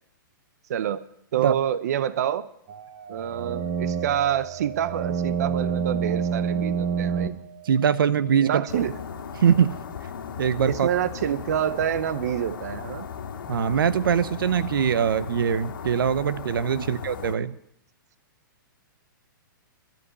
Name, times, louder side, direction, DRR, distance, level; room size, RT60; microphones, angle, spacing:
voice 1, 0.7-1.0 1.3-2.5 3.1-7.3 8.4-9.0 10.7-13.1 16.8-16.9, right 10 dB, 50° right, 15 dB, 0.7 m, -27 dB
sound 1, 2.7-7.3, right 6 dB, 30° right, 1.3 m, -28 dB
voice 2, 7.6-8.6 9.4-9.8 10.4-10.9 13.5-17.5, right 8 dB, 85° right, 16 dB, 0.7 m, -22 dB
sound 2, 8.7-17.4, left 7 dB, 75° left, 1.8 m, -37 dB
12.0 x 8.3 x 9.8 m, 0.72 s
hypercardioid pair, 170°, 11 cm